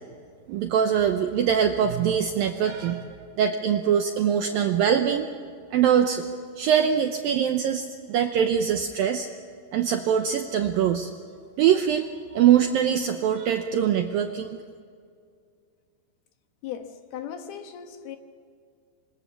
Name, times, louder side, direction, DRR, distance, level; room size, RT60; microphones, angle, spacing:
voice 1, 0.5-5.3 5.7-6.3 6.6-9.3 9.7-11.1 11.6-14.6, right 8 dB, 80° right, 2.1 m, -23 dB
voice 2, 16.6-18.2, left 9 dB, 70° left, 2.9 m, -37 dB
27.0 x 23.5 x 7.3 m
omnidirectional pair, 5.2 m